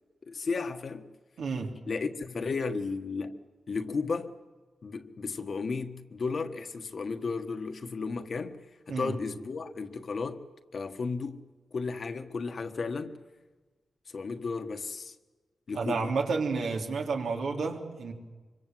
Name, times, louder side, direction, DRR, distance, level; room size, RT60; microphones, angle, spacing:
voice 1, 0.2-1.1 1.9-3.4 3.7-4.3 4.8-10.5 10.7-11.4 11.7-13.2 14.1-15.1 15.7-16.1, left 4 dB, 55° left, 1.5 m, -34 dB
voice 2, 1.4-1.7 8.9-9.1 15.7-18.1, right 4 dB, 85° right, 3.6 m, -31 dB
25.0 x 24.5 x 7.8 m
wide cardioid pair, 120°, 0 cm